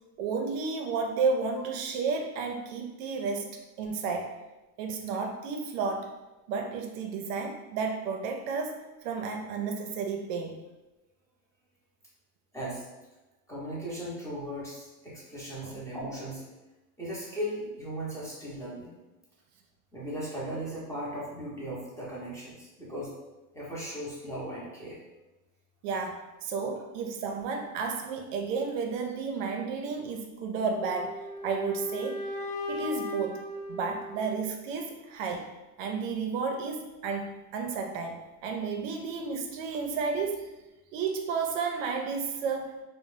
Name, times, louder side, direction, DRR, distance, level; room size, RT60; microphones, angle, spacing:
voice 1, 0.2-4.3 4.8-6.1 6.5-10.6 15.6-15.8 25.8-32.3 32.7-35.5 35.8-40.5 40.9-42.8, right 5 dB, 65° right, 3 dB, 0.5 m, -32 dB
voice 2, 12.5-12.9 13.5-16.4 17.0-19.0 19.9-23.1 23.5-25.0, equal, 5° left, -7 dB, 0.6 m, -37 dB
sound 1, 30.6-34.7, left 1 dB, 80° left, 0.8 m, -37 dB
2.5 x 2.0 x 3.2 m, 1.1 s
supercardioid pair, 120°, 43 cm